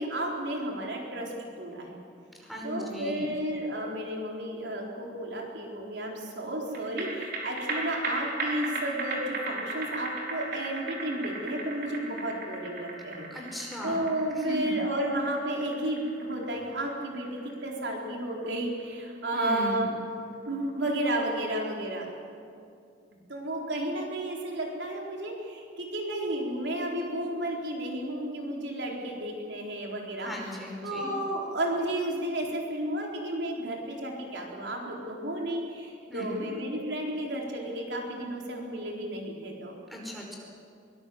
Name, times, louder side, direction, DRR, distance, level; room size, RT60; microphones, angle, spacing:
voice 1, 0.0-2.0 2.6-19.9 20.5-22.1 23.3-30.3 30.8-39.8, right 1 dB, 75° right, -1 dB, 4.2 m, -32 dB
voice 2, 2.4-3.3 13.3-14.1 14.4-14.8 19.3-20.0 30.2-31.1 36.1-36.5 39.9-40.4, left 1 dB, ahead, -1 dB, 5.3 m, -37 dB
sound 1, 6.7-19.4 19.7-19.8, right 2 dB, 60° right, 4.6 m, -37 dB
23.5 x 20.5 x 7.9 m, 2.4 s
head